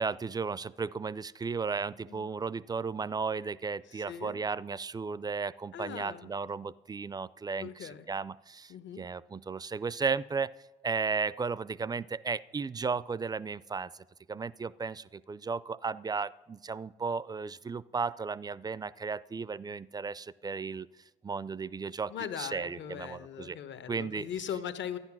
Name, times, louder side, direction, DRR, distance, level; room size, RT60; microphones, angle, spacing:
voice 1, 0.0-10.5 10.8-13.9 14.3-20.9 21.2-23.6 23.9-24.3, right 5 dB, 20° right, 20 dB, 0.4 m, -35 dB
voice 2, 3.9-4.3 5.7-6.3 7.6-8.1 8.7-9.0 22.1-25.0, left 9 dB, 70° left, 11 dB, 1.0 m, -40 dB
12.5 x 9.7 x 6.0 m, 1.1 s
cardioid pair, 90°, 20 cm